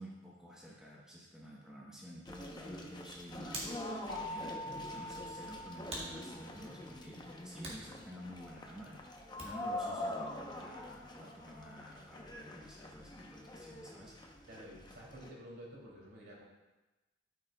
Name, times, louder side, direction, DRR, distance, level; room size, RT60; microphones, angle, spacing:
voice 1, 0.0-7.2 7.4-9.0 9.4-14.1, equal, 5° right, -5 dB, 1.0 m, -51 dB
sound 1, 2.3-15.3, left 1 dB, 25° left, 0.7 m, -45 dB
Hands, 2.9-9.8, right 1 dB, 35° right, 1.8 m, -50 dB
sound 2, 4.1-6.9, left 1 dB, 55° left, 2.2 m, -45 dB
voice 2, 14.5-16.4, equal, 60° right, -4 dB, 2.7 m, -51 dB
13.0 x 6.5 x 2.3 m, 1.1 s
head